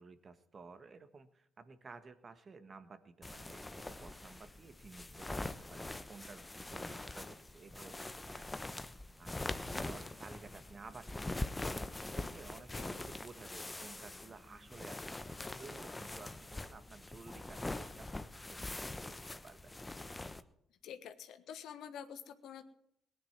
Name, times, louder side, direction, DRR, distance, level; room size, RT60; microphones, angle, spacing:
voice 1, 0.0-8.5 9.2-19.8, right 4 dB, 40° right, 10 dB, 1.6 m, -54 dB
sound 1, 3.2-20.4, left 2 dB, 20° left, 1.0 m, -43 dB
voice 2, 20.8-22.6, left 8 dB, 65° left, 9 dB, 1.4 m, -48 dB
19.0 x 10.5 x 5.9 m, 0.73 s
hypercardioid pair, 50°, 0 cm